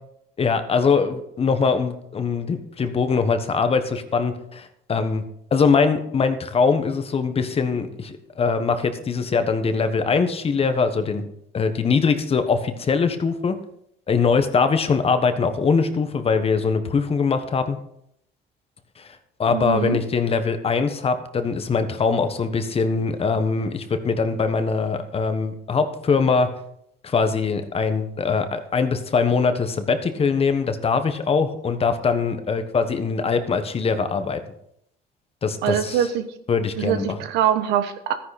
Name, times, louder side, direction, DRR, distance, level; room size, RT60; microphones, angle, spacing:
voice 1, 0.4-5.2 5.5-11.3 11.5-13.6 14.1-17.8 19.0-19.1 19.4-26.5 27.0-34.4 35.4-36.1 36.5-37.2, left 5 dB, 35° left, 9 dB, 1.3 m, -22 dB
voice 2, 19.5-20.0 35.6-36.3 36.8-38.1, right 10 dB, 90° right, 10 dB, 1.1 m, -23 dB
13.0 x 10.0 x 4.2 m, 0.74 s
cardioid pair, 110°, 17 cm